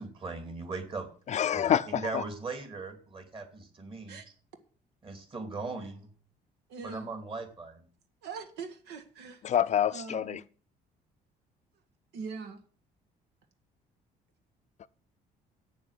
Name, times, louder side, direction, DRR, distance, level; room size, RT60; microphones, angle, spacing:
voice 1, 0.0-4.2 5.0-6.1 6.8-7.9, right 3 dB, 30° right, 2.7 m, -39 dB
voice 2, 1.3-2.2 9.4-10.4, left 9 dB, 45° left, 0.5 m, -27 dB
voice 3, 6.7-7.1 8.2-9.4 9.9-10.4 12.1-12.6, right 5 dB, 85° right, 1.6 m, -41 dB
8.3 x 7.2 x 7.9 m
cardioid pair, 110°, 17 cm